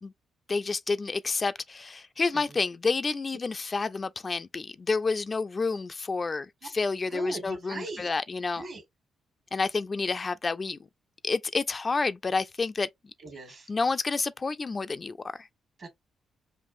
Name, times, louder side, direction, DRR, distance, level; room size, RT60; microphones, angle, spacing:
voice 1, 0.5-8.7 9.5-10.8 11.2-12.9 13.7-15.5, left 4 dB, 40° left, 0.3 m, -29 dB
voice 2, 7.1-8.1 8.6-8.8 13.2-13.7 15.8-15.9, right 3 dB, 60° right, 1.5 m, -40 dB
5.3 x 2.5 x 2.4 m
hypercardioid pair, 50°, 0 cm